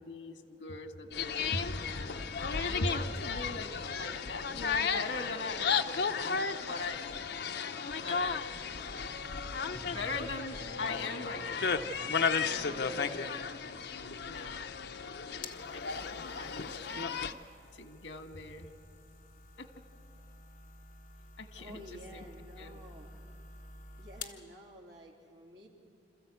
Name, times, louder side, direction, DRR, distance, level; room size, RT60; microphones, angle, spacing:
voice 1, 0.0-2.1 2.5-7.0 8.0-8.4 9.8-11.8 12.4-13.3 14.2-14.7 15.7-17.2 17.7-18.7 19.6-19.7 21.4-22.2 22.6-22.8, left 2 dB, 75° left, 6 dB, 1.6 m, -40 dB
sound 1, 1.1-17.3, left 5 dB, 60° left, 0.7 m, -34 dB
sound 2, 9.7-17.9, right 1 dB, 10° right, 0.9 m, -55 dB
sound 3, 14.9-24.5, left 3 dB, 45° left, 1.3 m, -51 dB
voice 2, 21.6-23.2 24.0-25.7, equal, 65° right, -1 dB, 2.9 m, -51 dB
27.0 x 14.0 x 8.2 m, 2.6 s
head